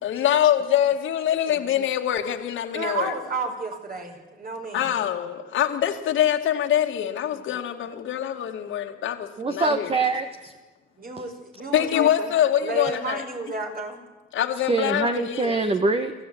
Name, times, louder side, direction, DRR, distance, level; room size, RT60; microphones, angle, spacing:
voice 1, 0.0-3.1 4.7-9.9 11.7-13.2 14.3-15.6, left 10 dB, 80° left, 4 dB, 2.4 m, -24 dB
voice 2, 2.7-4.9 11.0-12.3 12.6-14.0, right 3 dB, 45° right, 3 dB, 5.5 m, -32 dB
voice 3, 9.4-10.5 11.2-11.3 14.7-16.1, right 3 dB, 30° right, 7 dB, 1.6 m, -24 dB
25.0 x 14.5 x 9.5 m, 1.3 s
cardioid pair, 90°, 20 cm